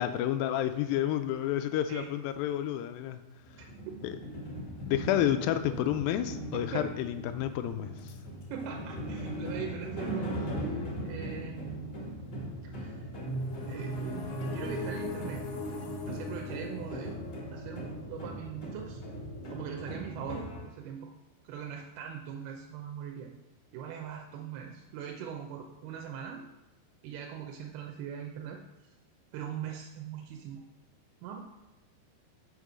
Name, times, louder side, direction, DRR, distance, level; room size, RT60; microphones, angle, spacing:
voice 1, 0.0-3.2 4.0-4.1 4.8-8.1, left 11 dB, 85° left, 9 dB, 2.0 m, -30 dB
sound 1, 3.4-20.6, equal, 40° left, 1.7 m, -39 dB
voice 2, 8.5-10.7 11.0-11.9 12.6-13.1 13.7-15.5 16.1-17.2 17.5-19.0 19.5-21.1 21.4-23.3 23.7-26.5 27.0-28.9 29.3-30.6 31.2-31.4, right 8 dB, 80° right, 2 dB, 2.6 m, -41 dB
sound 2, 13.1-18.9, equal, 55° left, 1.4 m, -39 dB
6.6 x 5.4 x 6.2 m, 0.95 s
omnidirectional pair, 4.6 m